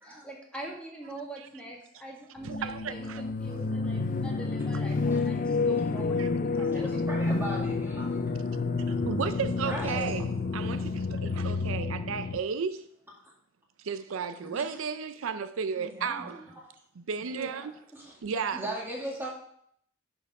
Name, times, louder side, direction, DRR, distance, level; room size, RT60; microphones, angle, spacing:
voice 1, 0.0-7.3 8.1-8.2 17.3-17.7, right 1 dB, 5° left, 1.8 m, -44 dB
sound 1, 2.4-12.4, left 3 dB, 40° left, 0.4 m, -29 dB
voice 2, 2.4-3.2 6.2-6.3 8.9-12.9 13.8-16.4 17.0-17.8 18.2-18.6, right 6 dB, 80° right, 0.5 m, -34 dB
voice 3, 6.6-8.2 9.6-10.2 14.4-14.6 15.8-16.7 18.0-18.2 18.5-19.3, right 1 dB, 10° right, 2.1 m, -38 dB
10.5 x 4.5 x 4.8 m
head